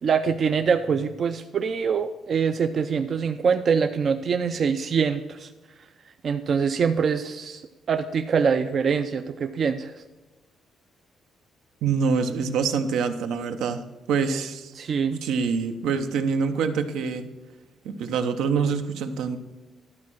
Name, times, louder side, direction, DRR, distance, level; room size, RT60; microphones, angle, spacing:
voice 1, 0.0-5.5 6.2-7.6 7.9-9.9 14.8-15.2, right 6 dB, 50° right, 7 dB, 0.5 m, -24 dB
voice 2, 11.8-13.8 14.1-14.7 15.2-17.3 17.8-19.4, right 5 dB, 85° right, 7 dB, 0.8 m, -25 dB
12.0 x 4.2 x 6.2 m, 1.2 s
cardioid pair, 90°, 0 cm